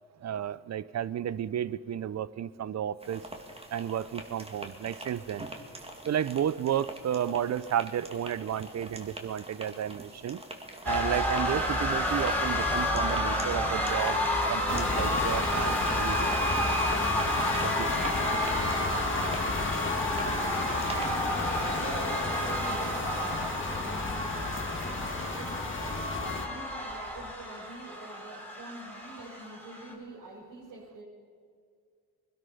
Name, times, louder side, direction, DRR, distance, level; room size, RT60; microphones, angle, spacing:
voice 1, 0.2-3.2 3.7-5.5 6.1-10.4 10.8-14.2 14.5-16.3 16.6-16.7 17.6-17.9, right 10 dB, 45° right, 18 dB, 0.7 m, -32 dB
sound 1, 3.0-21.1, right 1 dB, 15° right, 2.4 m, -45 dB
voice 2, 8.7-9.1 18.8-24.6 25.3-31.0, right 2 dB, 70° right, -7 dB, 5.1 m, -46 dB
sound 2, 10.9-29.9, equal, 5° left, 3.7 m, -30 dB
sound 3, 14.7-26.5, left 4 dB, 35° left, 1.5 m, -34 dB
21.0 x 12.5 x 5.5 m, 2.1 s
supercardioid pair, 65°, 36 cm